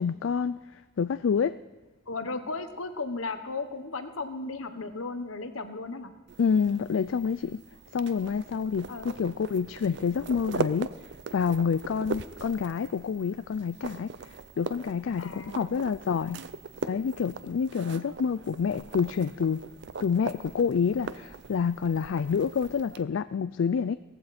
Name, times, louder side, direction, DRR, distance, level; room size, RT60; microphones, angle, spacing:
voice 1, 0.0-1.6 6.4-7.6 7.9-10.9 11.3-16.4 16.8-19.6 20.0-23.9, left 6 dB, 70° left, 14 dB, 0.3 m, -28 dB
voice 2, 2.1-6.1 8.9-9.1 15.2-15.8, left 3 dB, 85° left, 8 dB, 1.3 m, -35 dB
sound 1, 6.3-23.0, right 4 dB, 55° right, 0.5 m, -40 dB
18.0 x 15.0 x 4.3 m, 1.3 s
head